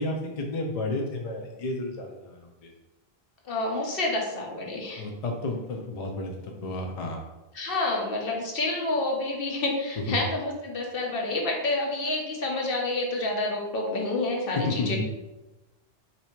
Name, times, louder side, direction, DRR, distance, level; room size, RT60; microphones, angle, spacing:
voice 1, 0.0-2.7 5.0-7.2 10.0-10.2 14.7-15.0, left 2 dB, 45° left, 1 dB, 0.5 m, -32 dB
voice 2, 3.4-5.0 7.5-15.0, left 2 dB, 65° left, 0 dB, 1.0 m, -28 dB
3.2 x 2.8 x 4.4 m, 1.0 s
omnidirectional pair, 1.1 m